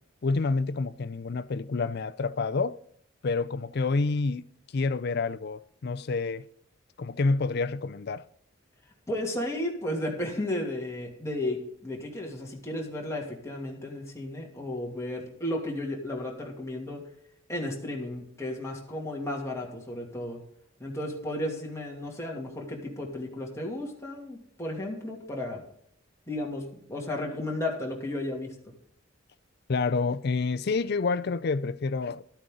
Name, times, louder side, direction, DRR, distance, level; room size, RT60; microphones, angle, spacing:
voice 1, 0.2-2.8 3.2-4.4 4.7-6.4 7.0-8.2 29.7-32.2, left 4 dB, 55° left, 0.5 m, -28 dB
voice 2, 9.1-17.1 17.5-20.4 20.8-25.6 26.3-28.5, left 1 dB, 15° left, 2.6 m, -34 dB
12.5 x 8.8 x 3.9 m
head